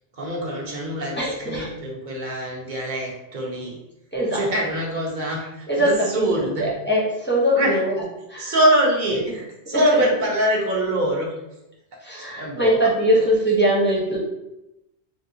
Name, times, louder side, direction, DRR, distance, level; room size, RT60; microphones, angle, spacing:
voice 1, 0.1-3.8 4.3-6.6 7.6-7.8 8.4-11.3 12.2-12.9, right 1 dB, 50° right, -2 dB, 0.8 m, -24 dB
voice 2, 1.2-1.7 4.1-4.5 5.7-8.0 8.3-8.5 9.1-9.2 9.7-9.8 12.0-14.2, equal, 10° left, -5 dB, 0.6 m, -22 dB
3.4 x 2.4 x 2.7 m, 0.89 s
omnidirectional pair, 1.1 m